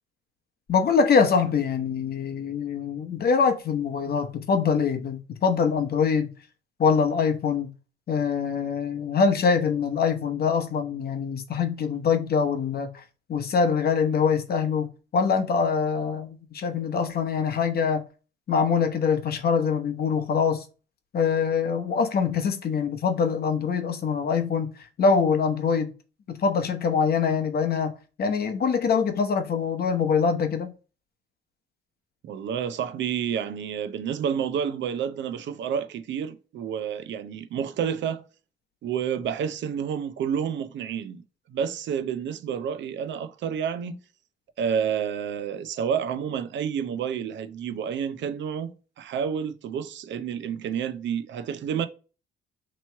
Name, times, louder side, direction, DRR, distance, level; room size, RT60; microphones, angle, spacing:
voice 1, 0.7-6.3 6.8-7.7 8.1-13.0 13.3-18.0 18.5-20.6 21.1-25.9 26.3-27.9 28.2-30.7, left 5 dB, 50° left, 0.8 m, -24 dB
voice 2, 32.2-38.2 38.8-41.2 41.5-44.0 44.6-51.9, right 8 dB, 65° right, 0.5 m, -29 dB
3.0 x 3.0 x 4.4 m
cardioid pair, 90°, 20 cm